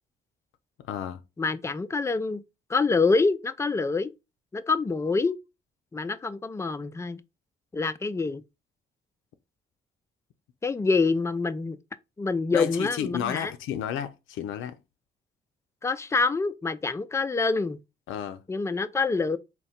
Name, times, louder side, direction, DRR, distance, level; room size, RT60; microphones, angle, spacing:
voice 1, 0.9-1.2 12.5-14.8 18.1-18.4, left 9 dB, 85° left, 0.5 m, -32 dB
voice 2, 1.4-2.4 2.7-4.1 4.5-5.3 5.9-7.2 7.7-8.4 10.6-11.8 12.2-13.5 15.8-17.8 18.5-19.4, left 4 dB, 15° left, 0.3 m, -26 dB
3.6 x 2.2 x 4.1 m
cardioid pair, 90°, 20 cm